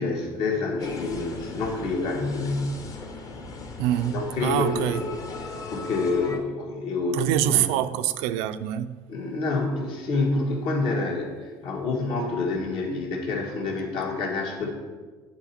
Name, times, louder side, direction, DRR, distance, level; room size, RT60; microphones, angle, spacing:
voice 1, 0.0-2.8 4.1-7.7 9.1-14.7, left 3 dB, 65° left, 1.6 m, -28 dB
sound 1, 0.8-6.4, left 3 dB, 35° left, 0.8 m, -37 dB
voice 2, 3.8-5.0 7.1-8.9, right 12 dB, 85° right, 0.4 m, -25 dB
9.8 x 4.2 x 4.3 m
cardioid pair, 130°, 10 cm